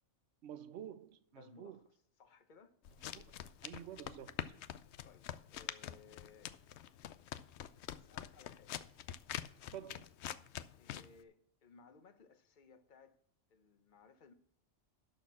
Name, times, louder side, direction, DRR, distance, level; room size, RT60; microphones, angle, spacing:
voice 1, 0.4-1.8 3.1-3.3 3.6-4.4 9.7-10.1, right 10 dB, 65° right, 0.9 m, -49 dB
voice 2, 1.3-2.8 5.0-6.6 7.9-8.8 10.7-13.2 13.5-14.3, left 5 dB, 45° left, 1.0 m, -62 dB
sound 1, 2.9-11.2, left 11 dB, 70° left, 0.8 m, -46 dB
12.0 x 4.3 x 7.3 m
omnidirectional pair, 1.2 m